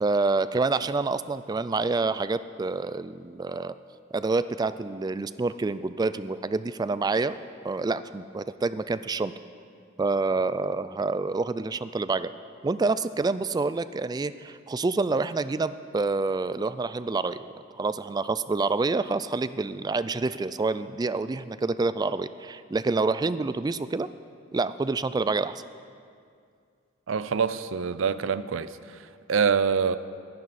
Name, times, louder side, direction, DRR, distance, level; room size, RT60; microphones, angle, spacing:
voice 1, 0.0-3.8 4.1-7.4 7.6-9.3 10.0-12.3 12.6-24.1 24.5-25.6, right 3 dB, 20° right, 13 dB, 0.3 m, -27 dB
voice 2, 27.1-29.0 29.3-30.0, right 6 dB, 80° right, 14 dB, 0.5 m, -25 dB
21.0 x 11.0 x 4.2 m, 2.3 s
head